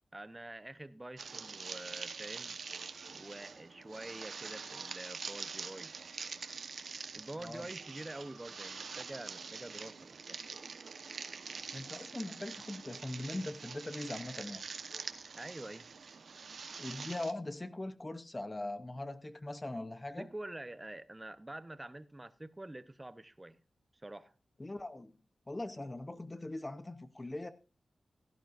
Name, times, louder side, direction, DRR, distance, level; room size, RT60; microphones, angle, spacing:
voice 1, 0.1-2.6 3.1-5.9 7.1-10.4 15.3-15.9 20.2-23.6 24.0-24.3, right 1 dB, 15° right, 0.7 m, -47 dB
sound 1, 1.2-17.3, right 5 dB, 70° right, 1.0 m, -45 dB
voice 2, 11.7-14.6 16.8-20.3 24.6-25.1 25.5-27.5, left 2 dB, 20° left, 0.7 m, -41 dB
16.5 x 12.0 x 2.5 m
wide cardioid pair, 100°, 0 cm